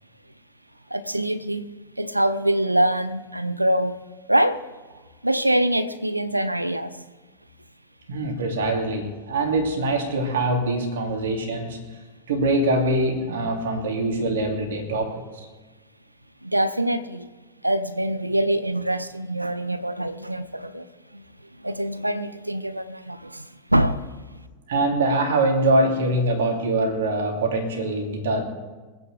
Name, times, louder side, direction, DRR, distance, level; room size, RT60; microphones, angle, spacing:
voice 1, 0.9-1.7 2.0-4.0 4.3-4.7 5.2-7.0 16.4-17.3 17.6-20.9 21.1-21.2 21.6-24.0, right 1 dB, 85° right, 0.6 m, -24 dB
voice 2, 8.1-11.8 12.3-15.5 24.7-28.4, right 2 dB, 60° right, 2.6 m, -23 dB
25.0 x 9.4 x 3.3 m
figure-of-eight pair, 90°, 0 cm